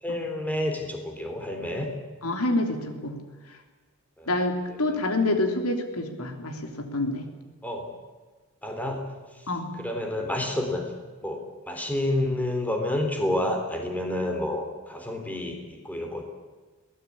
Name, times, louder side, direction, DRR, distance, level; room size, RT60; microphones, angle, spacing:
voice 1, 0.0-1.9 4.2-4.3 4.8-4.9 7.6-7.9 8.6-9.1 9.8-10.9 11.2-16.2, left 1 dB, 5° left, 3 dB, 3.8 m, -29 dB
voice 2, 2.2-3.1 4.3-7.2 9.5-9.7, left 2 dB, 80° left, 5 dB, 3.4 m, -27 dB
22.5 x 18.5 x 8.7 m, 1.3 s
head